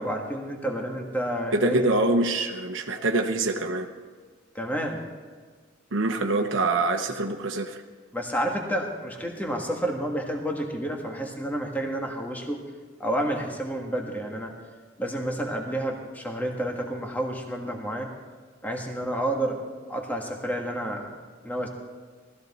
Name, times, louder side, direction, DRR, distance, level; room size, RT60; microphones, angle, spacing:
voice 1, 0.0-1.9 4.5-5.0 8.1-12.6 13.0-14.5 15.0-18.1 18.6-19.6 19.9-21.1 21.4-21.7, right 1 dB, 10° left, 1 dB, 1.5 m, -30 dB
voice 2, 1.5-3.9 5.9-7.8, right 2 dB, 85° right, 4 dB, 0.9 m, -25 dB
19.0 x 14.0 x 4.1 m, 1.5 s
head